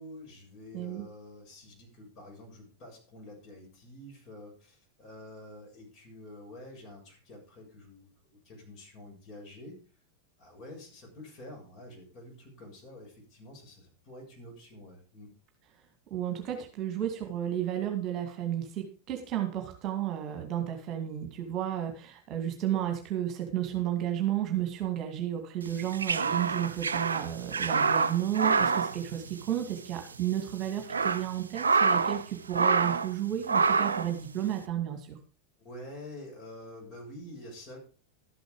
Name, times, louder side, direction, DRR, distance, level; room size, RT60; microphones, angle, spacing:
voice 1, 0.0-8.1 8.5-9.8 10.4-15.3 35.6-37.8, left 1 dB, 35° left, 1 dB, 7.1 m, -48 dB
voice 2, 0.7-1.1 16.1-35.2, right 11 dB, 35° right, 4 dB, 2.2 m, -32 dB
sound 1, 25.7-29.8 30.0-30.2 30.7-32.2 32.5-33.1 33.5-34.1, right 5 dB, 70° right, 0.6 m, -27 dB
12.5 x 7.9 x 4.9 m, 0.35 s
figure-of-eight pair, 90°, 0 cm